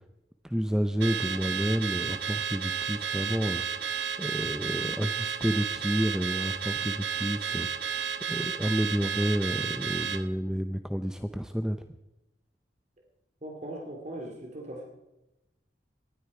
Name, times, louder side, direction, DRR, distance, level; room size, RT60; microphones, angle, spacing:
voice 1, 0.4-3.9 4.2-7.9 8.3-11.8, equal, 5° right, 8 dB, 0.5 m, -30 dB
Car / Alarm, 1.0-10.3, right 7 dB, 80° right, 1.0 m, -32 dB
voice 2, 13.4-14.8, right 1 dB, 40° right, 1 dB, 2.4 m, -39 dB
19.5 x 12.5 x 4.9 m, 0.96 s
head